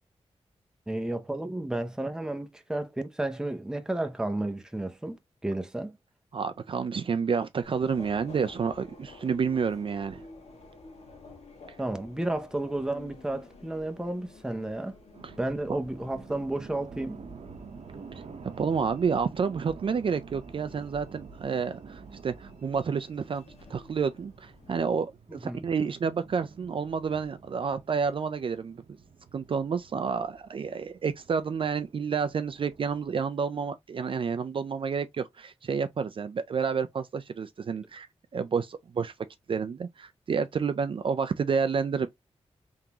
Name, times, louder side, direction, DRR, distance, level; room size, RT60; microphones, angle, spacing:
voice 1, 0.9-6.0 11.8-15.0 15.4-17.2 25.3-25.7, right 1 dB, 5° right, 0.6 m, -32 dB
voice 2, 6.3-10.2 15.2-15.3 18.6-23.4 23.7-28.8 29.3-38.1 38.3-39.1 39.5-42.1, right 6 dB, 50° right, 0.4 m, -29 dB
Subway metro underground, 7.6-24.9, left 3 dB, 70° left, 1.7 m, -52 dB
sound 1, 15.1-33.1, right 5 dB, 65° right, 0.8 m, -49 dB
3.7 x 3.6 x 2.8 m
wide cardioid pair, 115°, 11 cm